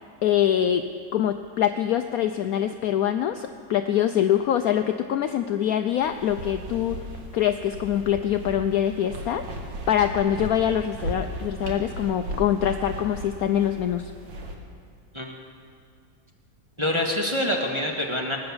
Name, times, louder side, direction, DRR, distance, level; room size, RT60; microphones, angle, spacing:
voice 1, 0.2-7.0 7.3-14.1, left 10 dB, 70° left, 8 dB, 0.9 m, -24 dB
sound 1, 6.0-14.5, equal, 85° right, 2.2 m, -36 dB
voice 2, 16.8-18.4, left 1 dB, 15° right, 0 dB, 1.5 m, -26 dB
19.5 x 8.9 x 7.1 m, 2.4 s
omnidirectional pair, 1.9 m